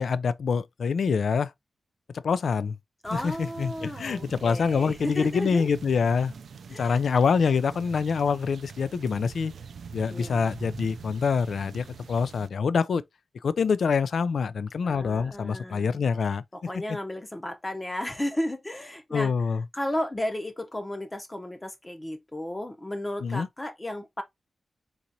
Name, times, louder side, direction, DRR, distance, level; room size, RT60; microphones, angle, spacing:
voice 1, 0.0-1.5 2.1-2.8 3.1-6.3 6.8-9.5 9.9-13.0 13.4-16.4 19.1-19.6 23.2-23.5, left 5 dB, 85° left, 0.3 m, -25 dB
voice 2, 3.0-5.7 6.7-7.0 10.1-10.5 14.8-16.0 16.7-19.3 19.7-24.2, left 1 dB, 20° left, 0.7 m, -33 dB
sound 1, 3.0-12.5, right 5 dB, 90° right, 0.3 m, -44 dB
3.9 x 2.9 x 2.7 m
wide cardioid pair, 95°, 0 cm